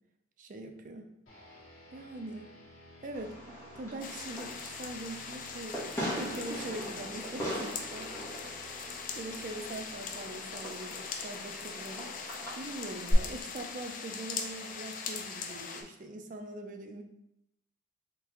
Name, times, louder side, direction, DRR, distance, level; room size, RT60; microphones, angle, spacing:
voice 1, 0.4-1.0 1.9-2.5 3.0-8.1 9.2-12.1 12.6-17.0, right 2 dB, 40° right, 5 dB, 0.4 m, -42 dB
sound 1, 1.3-12.9, left 1 dB, 75° left, 1.5 m, -56 dB
Fireworks, 3.1-13.1, equal, 15° left, 1.2 m, -41 dB
sound 2, 4.0-15.8, left 5 dB, 40° left, 0.4 m, -41 dB
3.7 x 3.4 x 3.0 m, 0.80 s
head